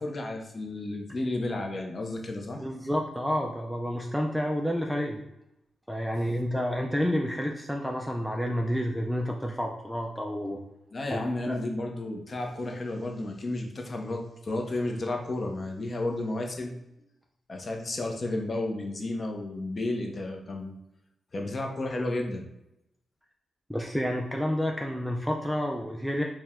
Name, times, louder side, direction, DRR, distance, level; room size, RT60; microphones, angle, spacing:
voice 1, 0.0-2.6 10.9-16.7 17.5-20.7 21.3-22.4, left 2 dB, 35° left, 2 dB, 0.6 m, -32 dB
voice 2, 2.6-5.2 5.9-10.6 11.1-11.2 11.5-11.6 23.7-26.2, equal, ahead, 1 dB, 0.3 m, -29 dB
4.5 x 2.1 x 3.6 m, 0.86 s
wide cardioid pair, 155°, 0 cm